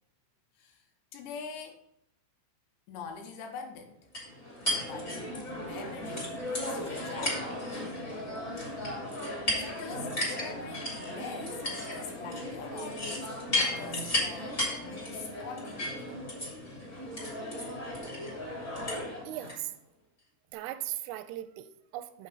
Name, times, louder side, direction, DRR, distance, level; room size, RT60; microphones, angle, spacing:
voice 1, 0.5-1.8 2.9-4.0 4.8-7.5 8.5-8.8 9.6-16.1, left 6 dB, 75° left, 4 dB, 3.2 m, -44 dB
sound 1, 4.1-19.6, left 1 dB, 25° left, 2.1 m, -35 dB
voice 2, 19.3-19.7 20.5-22.3, right 14 dB, 85° right, 11 dB, 3.1 m, -38 dB
8.5 x 7.3 x 4.0 m, 0.75 s
omnidirectional pair, 5.9 m